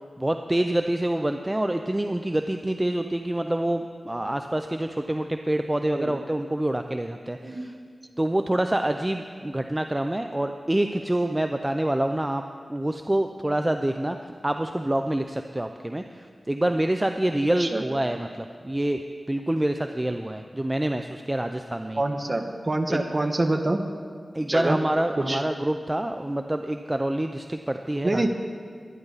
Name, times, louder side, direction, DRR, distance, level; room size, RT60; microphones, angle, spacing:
voice 1, 0.2-7.7 8.2-12.4 12.7-19.0 19.3-22.0 22.9-23.0 24.3-28.2, right 1 dB, 20° right, 6 dB, 0.6 m, -26 dB
voice 2, 22.0-23.8 24.5-24.8 25.3-25.4 28.0-28.3, right 2 dB, 40° right, 5 dB, 1.4 m, -25 dB
22.0 x 10.5 x 4.1 m, 2.1 s
cardioid pair, 55°, 0 cm